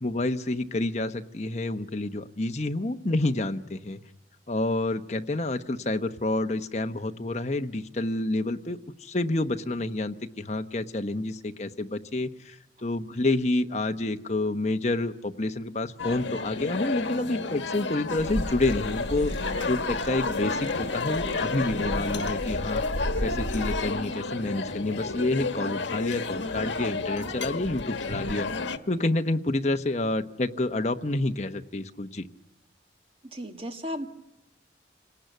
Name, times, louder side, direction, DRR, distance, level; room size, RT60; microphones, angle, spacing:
voice 1, 0.0-4.0 4.5-19.3 19.7-22.8 23.2-28.5 28.9-32.3, left 2 dB, 35° left, 7 dB, 1.0 m, -28 dB
sound 1, 16.0-28.8, left 3 dB, 80° left, 1.3 m, -31 dB
sound 2, 18.2-23.8, equal, 65° right, 2.1 m, -35 dB
voice 2, 33.2-34.1, equal, 30° right, 6 dB, 1.7 m, -35 dB
27.5 x 19.0 x 9.2 m, 0.96 s
head